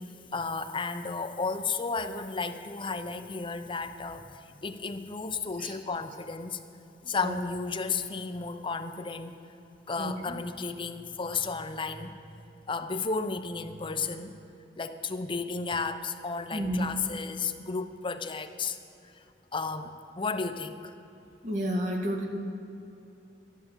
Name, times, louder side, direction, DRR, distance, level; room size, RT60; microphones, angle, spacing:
voice 1, 0.3-4.3 4.6-6.6 7.1-9.4 9.9-12.3 12.7-14.3 14.7-18.8 19.0-19.2 19.5-20.9, left 4 dB, 30° left, 8 dB, 0.7 m, -33 dB
voice 2, 7.0-7.4 10.0-10.3 16.5-16.9 21.4-22.4, equal, 45° right, 1 dB, 1.8 m, -31 dB
12.5 x 11.5 x 7.3 m, 2.7 s
head